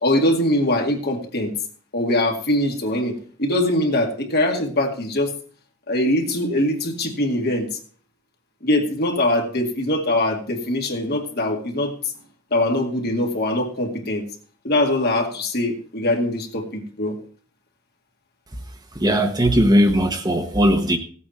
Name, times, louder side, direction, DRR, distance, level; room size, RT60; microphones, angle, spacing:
voice 1, 0.0-1.5 1.9-5.3 5.9-7.8 8.6-11.9 12.5-14.2 14.6-17.2, left 1 dB, 55° left, 2 dB, 2.2 m, -22 dB
voice 2, 19.0-21.0, equal, 20° right, 4 dB, 1.2 m, -18 dB
16.0 x 8.6 x 4.3 m, 0.43 s
head